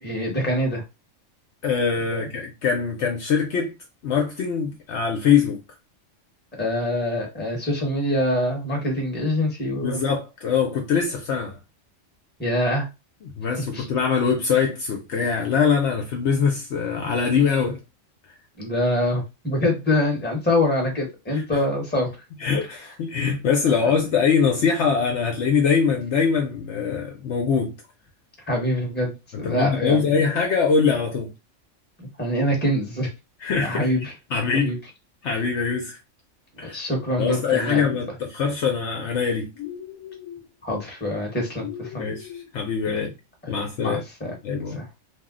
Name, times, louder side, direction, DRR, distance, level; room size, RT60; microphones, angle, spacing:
voice 1, 0.0-0.8 2.1-2.2 6.6-10.0 12.4-12.9 13.7-13.8 18.6-22.1 28.5-30.3 32.0-33.1 33.6-34.0 34.6-34.8 36.6-37.9 40.6-42.1 43.5-44.3 44.7-44.8, left 1 dB, 10° left, 0.8 m, -25 dB
voice 2, 1.6-3.7 4.0-5.6 9.8-11.6 13.2-17.8 21.3-21.6 22.4-27.7 29.3-31.3 33.4-34.8 35.2-36.0 36.6-36.8 37.2-39.5 41.9-43.1 43.5-44.0 44.4-44.8, left 6 dB, 65° left, 0.8 m, -23 dB
sound 1, 39.5-40.5 41.6-42.5, left 10 dB, 90° left, 1.0 m, -38 dB
2.6 x 2.0 x 3.6 m
omnidirectional pair, 1.4 m